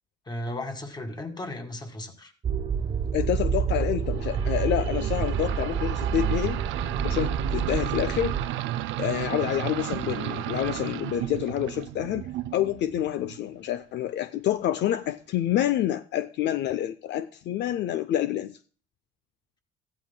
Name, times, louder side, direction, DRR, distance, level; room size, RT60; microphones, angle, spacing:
voice 1, 0.3-2.3 4.3-4.5, left 1 dB, 20° left, 1.8 m, -35 dB
sound 1, 2.4-8.4, right 6 dB, 30° right, 0.5 m, -28 dB
voice 2, 3.1-6.6 7.0-8.4 9.0-18.6, left 11 dB, 65° left, 0.5 m, -28 dB
sound 2, 4.1-13.5, right 13 dB, 80° right, 0.5 m, -33 dB
15.0 x 11.5 x 2.2 m
cardioid pair, 120°, 19 cm